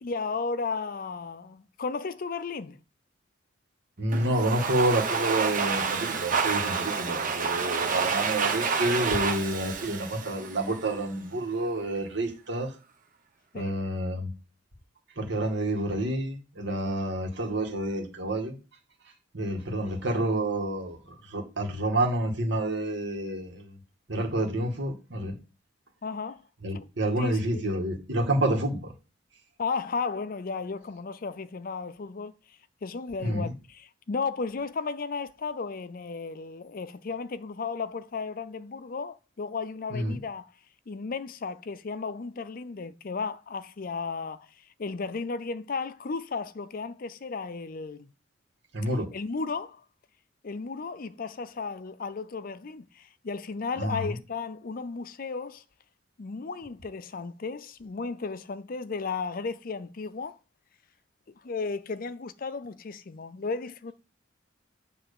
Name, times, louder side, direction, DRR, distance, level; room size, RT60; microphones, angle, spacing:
voice 1, 0.0-2.8 13.5-13.7 26.0-26.4 26.7-26.9 27.2-27.7 29.6-32.3 32.8-40.5 40.9-44.5 44.8-48.1 49.1-49.8 50.4-55.6 56.2-60.4 61.4-63.9, left 4 dB, 45° left, 0.5 m, -34 dB
voice 2, 4.0-12.7 13.5-14.3 15.2-18.5 19.3-23.8 24.1-25.3 26.6-28.9 33.2-33.5 39.9-40.2 48.7-49.1 53.8-54.1, right 1 dB, 60° right, 2.0 m, -29 dB
Domestic sounds home sounds, 4.1-11.0, right 5 dB, 40° right, 1.2 m, -29 dB
9.1 x 3.3 x 6.7 m
head